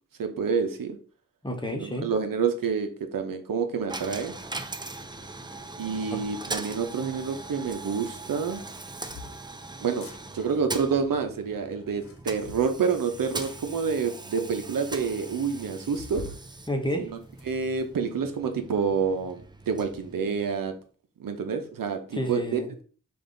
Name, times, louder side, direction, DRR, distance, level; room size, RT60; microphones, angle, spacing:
voice 1, 0.2-1.0 1.8-4.3 5.8-8.6 9.8-10.0 10.3-16.2 17.0-17.2 17.4-20.7 21.2-22.6, right 6 dB, 85° right, 6 dB, 0.8 m, -28 dB
voice 2, 1.4-2.1 6.1-6.2 16.7-17.1 22.1-22.8, equal, 15° left, 3 dB, 0.9 m, -30 dB
Coin (dropping), 3.9-20.8, right 2 dB, 15° right, 0.4 m, -40 dB
sound 1, 7.6-7.8 8.6-9.4 9.9-10.2 11.8-12.7 13.4-13.6 14.2-14.3 14.5-14.6 14.9-15.0 15.9-16.4 16.9-17.8, left 3 dB, 45° left, 0.7 m, -44 dB
5.4 x 2.6 x 3.8 m, 0.42 s
wide cardioid pair, 110°, 33 cm